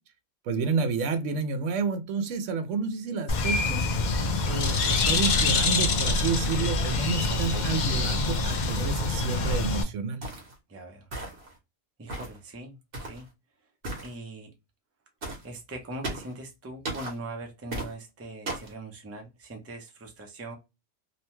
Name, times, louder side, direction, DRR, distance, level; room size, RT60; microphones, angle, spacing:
voice 1, 0.4-3.9 4.4-10.2, right 4 dB, 85° right, 0.9 m, -30 dB
Bird, 3.3-9.8, left 3 dB, 55° left, 0.5 m, -25 dB
voice 2, 7.2-7.7 10.7-11.1 12.0-13.3 14.0-14.5 15.4-20.5, right 2 dB, 20° right, 0.4 m, -41 dB
sound 1, 10.2-10.5 11.1-11.5 12.1-12.4 12.9-13.2 13.8-14.1 15.2-15.4 16.0-16.3 16.8-17.1 17.7-17.9 18.5-18.7, right 2 dB, 50° right, 1.0 m, -35 dB
2.7 x 2.2 x 2.9 m
omnidirectional pair, 1.3 m